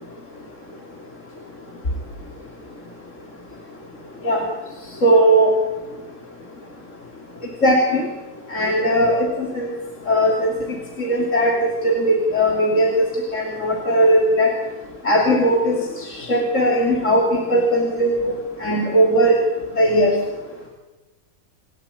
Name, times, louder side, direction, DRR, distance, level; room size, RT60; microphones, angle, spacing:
voice 1, 5.0-5.5 7.6-8.1 8.5-9.7 10.1-10.5 11.0-13.0 13.3-14.5 15.0-17.2 17.5-18.3 18.6-19.3 19.8-20.1, equal, 60° left, -1 dB, 3.4 m, -18 dB
28.5 x 14.0 x 8.5 m, 1.2 s
omnidirectional pair, 1.5 m